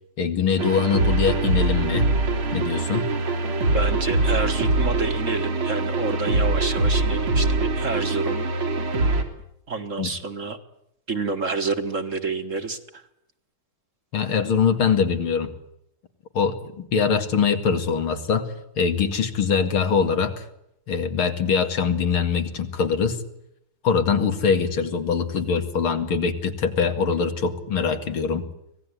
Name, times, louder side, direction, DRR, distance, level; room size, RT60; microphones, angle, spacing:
voice 1, 0.2-2.1 2.5-3.1 10.0-10.1 14.1-15.5 16.3-18.5 18.8-20.4 20.9-23.2 23.8-28.4, left 6 dB, 80° left, 8 dB, 3.0 m, -23 dB
sound 1, 0.6-9.2, right 2 dB, 80° right, 4.1 m, -23 dB
voice 2, 3.7-8.5 9.7-10.6 11.1-13.0, right 4 dB, 40° right, 8 dB, 1.8 m, -28 dB
25.5 x 18.5 x 9.8 m, 0.79 s
omnidirectional pair, 2.3 m